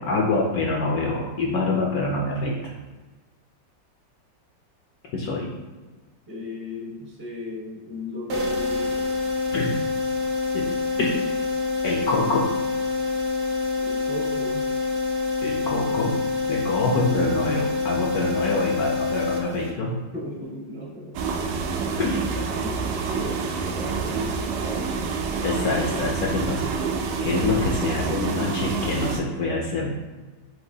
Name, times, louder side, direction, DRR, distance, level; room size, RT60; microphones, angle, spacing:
voice 1, 0.0-2.7 5.1-5.5 9.5-9.7 10.5-10.7 11.0-11.1 11.8-12.5 15.4-16.2 16.5-19.9 22.0-22.3 25.4-26.6 27.2-29.9, left 3 dB, 70° left, -1 dB, 0.9 m, -25 dB
voice 2, 5.3-5.7 6.3-9.1 13.8-14.7 18.4-18.7 20.1-21.2 22.6-25.2, left 1 dB, 25° right, -5 dB, 0.5 m, -36 dB
sound 1, 8.3-20.0, left 3 dB, 55° right, 0.8 m, -26 dB
sound 2, 21.1-29.2, right 5 dB, 75° right, 1.1 m, -27 dB
5.9 x 2.8 x 2.7 m, 1.3 s
omnidirectional pair, 2.0 m